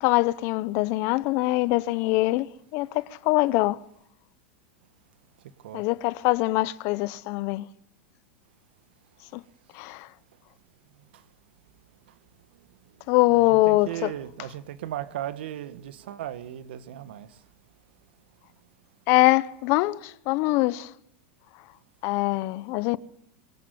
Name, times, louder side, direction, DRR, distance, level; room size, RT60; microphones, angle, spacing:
voice 1, 0.0-3.8 5.7-7.7 9.3-9.4 9.7-10.1 13.1-14.1 19.1-20.9 22.0-23.0, left 20 dB, 55° left, 1.0 m, -23 dB
voice 2, 13.5-17.3, right 12 dB, 75° right, 1.7 m, -36 dB
25.0 x 19.5 x 9.5 m
supercardioid pair, 120°, 6 cm